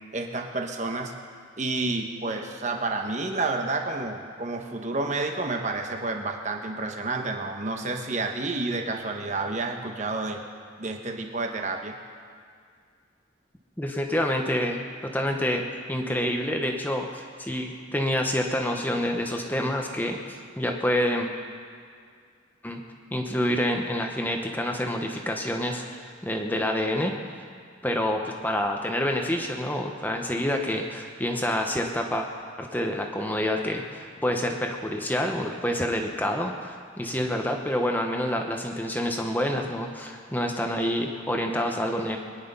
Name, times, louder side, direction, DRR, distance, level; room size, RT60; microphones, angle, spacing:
voice 1, 0.1-1.1 1.6-10.4 10.8-12.0, right 3 dB, 40° right, 3 dB, 1.1 m, -30 dB
voice 2, 13.8-21.3 22.6-22.8 23.1-27.1 27.8-32.3 32.6-42.2, left 1 dB, 10° left, 2 dB, 1.0 m, -27 dB
22.5 x 10.5 x 5.5 m, 2.1 s
head